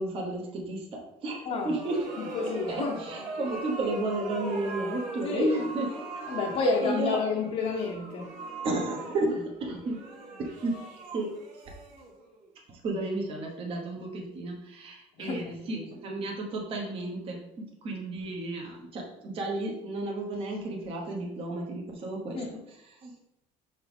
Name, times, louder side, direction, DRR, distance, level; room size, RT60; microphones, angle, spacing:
voice 1, 0.0-2.3 2.7-6.2 6.8-7.2 8.6-10.0 10.4-10.8 11.1-11.3 12.7-22.4 23.0-23.1, right 2 dB, 40° right, 0 dB, 1.0 m, -33 dB
sound 1, 1.5-12.4, right 2 dB, 65° right, 1.4 m, -40 dB
voice 2, 2.3-3.0 5.2-5.7 6.3-8.3 15.2-15.9 22.3-22.5, left 4 dB, 45° left, -2 dB, 0.8 m, -30 dB
6.1 x 4.4 x 3.5 m, 0.82 s
cardioid pair, 170°, 15 cm